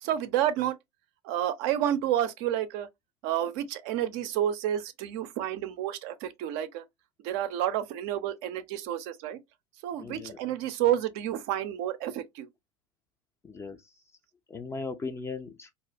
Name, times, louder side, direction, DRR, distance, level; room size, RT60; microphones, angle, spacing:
voice 1, 0.0-0.8 1.2-2.9 3.2-6.8 7.2-9.4 9.8-12.5, right 11 dB, 50° right, 0.4 m, -30 dB
voice 2, 10.0-10.4 13.4-13.8 14.5-15.7, left 4 dB, 15° left, 0.3 m, -37 dB
2.3 x 2.0 x 2.6 m
figure-of-eight pair, 85°, 17 cm